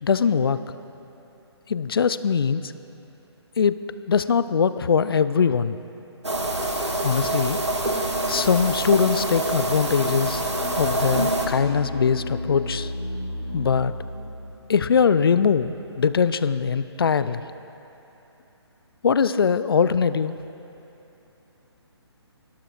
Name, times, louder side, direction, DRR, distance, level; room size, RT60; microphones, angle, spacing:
voice 1, 0.0-0.6 1.7-2.7 3.6-3.8 4.1-5.8 7.0-7.6 8.3-10.4 10.8-12.9 13.5-13.9 14.7-17.4 19.0-20.3, left 6 dB, 55° left, 14 dB, 0.4 m, -21 dB
sound 1, 6.2-11.5, right 2 dB, 85° right, 1.4 m, -26 dB
sound 2, 9.1-16.3, left 1 dB, 90° left, 3.3 m, -35 dB
21.5 x 13.0 x 2.4 m, 3.0 s
figure-of-eight pair, 140°, 14 cm